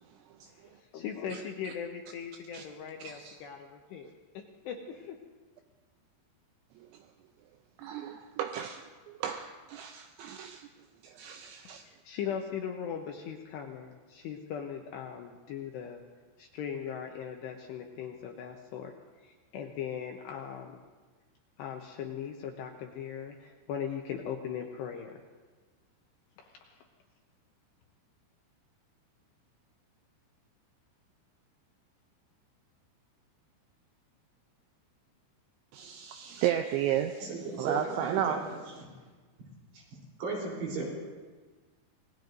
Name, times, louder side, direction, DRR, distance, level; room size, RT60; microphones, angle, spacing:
voice 1, 0.6-5.2 11.9-16.0 16.4-18.9 19.2-20.8 21.6-25.2 26.4-26.9, left 8 dB, 80° left, 2.6 m, -39 dB
voice 2, 3.0-3.4 6.8-7.1 7.8-10.7 11.0-11.8 35.7-37.3 37.6-38.5, right 10 dB, 80° right, 2.7 m, -34 dB
voice 3, 37.2-38.4 38.8-38.9 40.2-40.9, right 3 dB, 60° right, 5.7 m, -35 dB
27.0 x 19.5 x 2.6 m
omnidirectional pair, 5.7 m